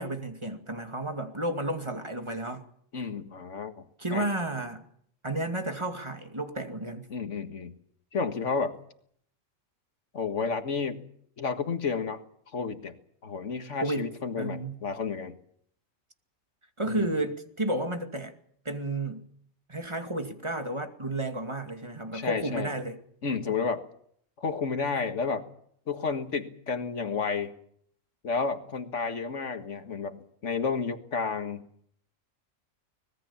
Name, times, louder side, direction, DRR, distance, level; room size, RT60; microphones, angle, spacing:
voice 1, 0.0-2.6 4.0-4.8 5.2-7.1 13.8-14.1 14.4-14.8 16.8-18.3 18.6-19.3 19.7-23.0, right 1 dB, 20° right, 2.3 m, -32 dB
voice 2, 2.9-3.9 4.1-4.3 7.1-7.7 8.1-8.8 10.1-11.0 11.4-12.2 12.5-13.0 13.2-15.4 16.8-17.1 22.1-22.7 23.2-23.8 24.4-25.4 25.9-27.5 28.2-31.7, left 5 dB, 65° left, 2.0 m, -31 dB
25.0 x 20.5 x 7.2 m
omnidirectional pair, 1.4 m